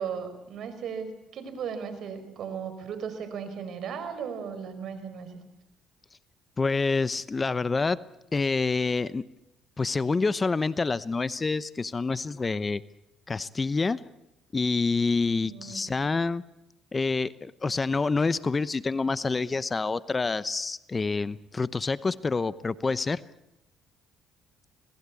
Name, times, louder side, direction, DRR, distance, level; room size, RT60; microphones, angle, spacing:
voice 1, 0.0-5.4 15.4-15.9, right 7 dB, 60° right, 10 dB, 5.3 m, -36 dB
voice 2, 6.6-8.0 8.3-9.2 9.8-12.8 13.3-14.0 14.5-16.4 16.9-23.2, left 4 dB, 25° left, 17 dB, 0.9 m, -27 dB
26.5 x 19.5 x 8.5 m, 0.90 s
supercardioid pair, 70°, 0 cm